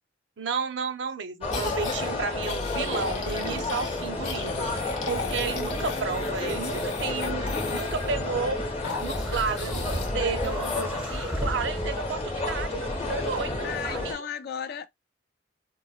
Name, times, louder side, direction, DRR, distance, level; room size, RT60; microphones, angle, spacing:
voice 1, 0.4-8.6 9.0-14.3, right 5 dB, 65° right, 0.5 m, -32 dB
sound 1, 1.4-14.1, left 2 dB, 30° left, 0.8 m, -31 dB
sound 2, 1.5-2.0 2.4-8.1 8.8-10.1 10.4-10.8, left 5 dB, 85° left, 0.8 m, -37 dB
sound 3, 9.1-14.2, equal, 5° right, 0.5 m, -35 dB
voice 2, 13.6-14.9, left 8 dB, 60° left, 0.4 m, -35 dB
3.9 x 2.1 x 2.3 m
head